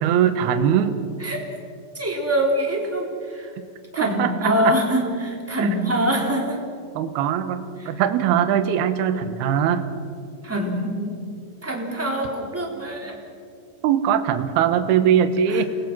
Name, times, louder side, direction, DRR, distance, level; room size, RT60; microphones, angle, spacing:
voice 1, 0.0-1.0 4.0-4.8 5.6-5.7 6.9-9.8 13.8-15.6, right 9 dB, 70° right, 9 dB, 2.8 m, -21 dB
voice 2, 1.9-3.5 3.9-6.6 7.8-8.0 10.4-11.2 11.6-13.2 15.5-15.6, equal, 5° right, -1 dB, 2.7 m, -24 dB
29.5 x 20.5 x 6.1 m, 2.4 s
omnidirectional pair, 5.4 m